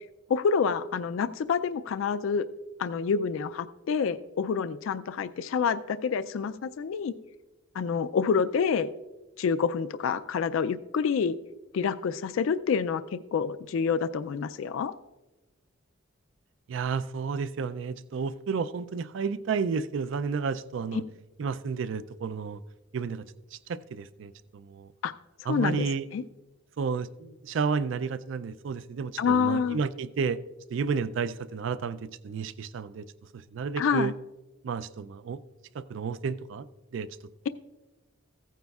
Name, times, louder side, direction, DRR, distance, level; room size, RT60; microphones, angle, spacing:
voice 1, 0.3-2.5 2.8-7.1 7.7-8.9 9.4-11.4 11.7-14.9 25.0-25.1 25.4-25.8 26.1-26.2 29.2-29.8 33.8-34.1, left 6 dB, 75° left, 13 dB, 0.3 m, -27 dB
voice 2, 16.7-21.0 21.4-22.6 22.9-23.3 23.5-24.9 25.5-26.1 26.8-30.4 30.7-33.1 33.3-34.1 34.6-35.4 35.7-36.7 36.9-37.2, right 5 dB, 65° right, 16 dB, 0.4 m, -31 dB
15.5 x 9.2 x 2.3 m, 1.1 s
head